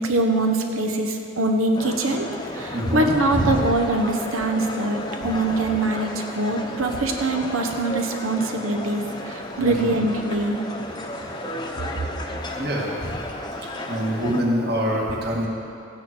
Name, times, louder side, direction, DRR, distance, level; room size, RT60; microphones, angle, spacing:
voice 1, 0.0-2.3 2.5-10.6, right 2 dB, 85° right, 4 dB, 1.2 m, -23 dB
sound 1, 1.7-14.4, left 1 dB, 20° left, 0.8 m, -33 dB
voice 2, 2.7-3.6 9.6-9.9 12.6-13.2 13.6-15.5, equal, 50° right, -3 dB, 1.9 m, -25 dB
15.0 x 10.0 x 4.5 m, 2.6 s
head